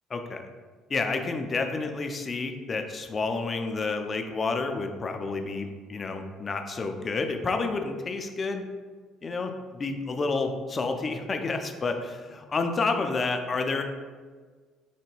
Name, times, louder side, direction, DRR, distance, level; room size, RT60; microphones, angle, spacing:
voice 1, 0.1-0.4 0.9-8.7 9.2-13.8, left 3 dB, 35° left, 5 dB, 0.4 m, -30 dB
3.3 x 2.1 x 3.2 m, 1.5 s
hypercardioid pair, 55°, 0 cm